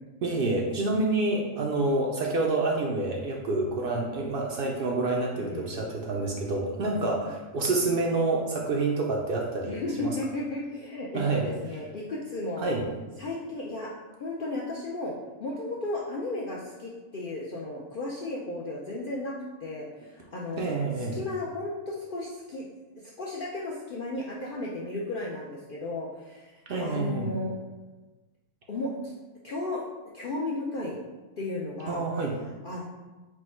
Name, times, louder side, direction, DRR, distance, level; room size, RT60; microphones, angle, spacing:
voice 1, 0.2-10.2 11.1-11.5 12.6-12.8 20.6-21.2 26.7-27.3 31.9-32.3, right 2 dB, 70° right, -1 dB, 0.5 m, -28 dB
voice 2, 5.3-5.8 6.9-7.3 9.7-12.7 13.2-13.9 14.2-19.3 19.6-22.7 23.2-26.5 26.8-27.6 28.7-29.1 29.4-29.8 30.1-31.0 31.4-32.0 32.6-32.8, left 2 dB, 65° left, -4 dB, 0.5 m, -34 dB
4.6 x 2.1 x 4.3 m, 1.2 s
omnidirectional pair, 1.5 m